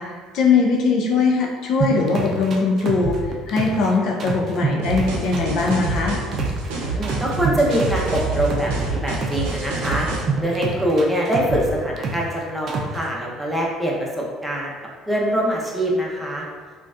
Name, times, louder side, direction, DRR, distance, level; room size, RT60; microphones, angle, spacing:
voice 1, 0.0-6.2, left 4 dB, 65° left, -1 dB, 0.5 m, -21 dB
sound 1, 1.8-3.9 4.2-6.7 7.0-9.5 9.8-12.3 12.7-13.0, right 4 dB, 45° right, 0.4 m, -26 dB
sound 2, 4.8-10.2, right 3 dB, 90° right, 0.6 m, -27 dB
voice 2, 6.7-8.7 9.0-10.1 10.4-14.7 15.1-16.4, equal, 5° right, -3 dB, 0.7 m, -23 dB
3.8 x 2.3 x 2.4 m, 1.5 s
supercardioid pair, 95°, 0 cm